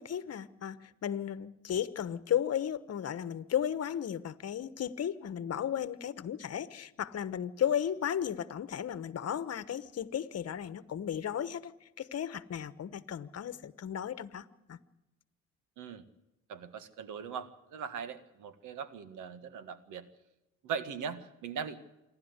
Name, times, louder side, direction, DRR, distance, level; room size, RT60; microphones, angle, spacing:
voice 1, 0.0-11.7 12.0-14.8, left 9 dB, 55° left, 15 dB, 1.2 m, -34 dB
voice 2, 16.5-20.1 20.6-21.8, right 7 dB, 85° right, 12 dB, 1.8 m, -40 dB
27.0 x 12.0 x 8.1 m, 0.97 s
cardioid pair, 90°, 30 cm